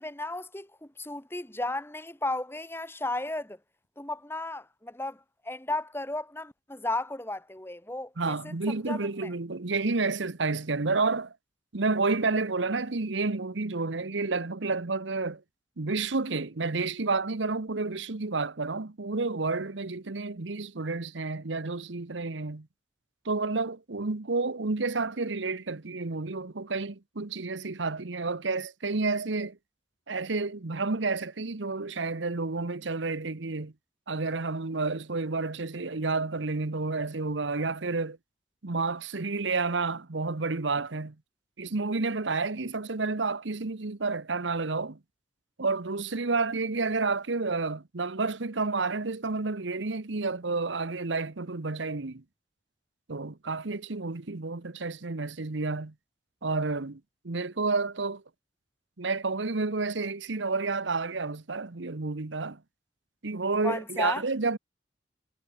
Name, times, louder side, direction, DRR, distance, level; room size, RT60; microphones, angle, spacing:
voice 1, 0.0-3.6 4.0-5.2 5.5-8.4 8.9-9.3 63.6-64.2, left 2 dB, 10° left, 1.7 m, -34 dB
voice 2, 8.2-11.3 11.7-15.4 15.8-22.7 23.2-29.6 30.1-33.7 34.1-38.2 38.6-41.1 41.6-45.0 45.6-52.2 53.1-55.9 56.4-57.0 57.2-58.2 59.0-62.6 63.2-64.6, right 3 dB, 80° right, 1.1 m, -30 dB
head